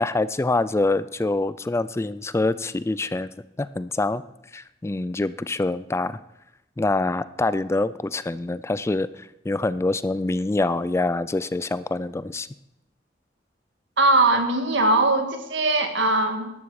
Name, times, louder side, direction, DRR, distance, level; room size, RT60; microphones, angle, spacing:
voice 1, 0.0-3.3 3.6-4.2 4.5-6.2 6.8-12.5, left 2 dB, 15° left, 16 dB, 0.3 m, -25 dB
voice 2, 14.0-16.5, right 2 dB, 80° right, 5 dB, 1.9 m, -20 dB
13.0 x 11.5 x 4.9 m, 0.86 s
head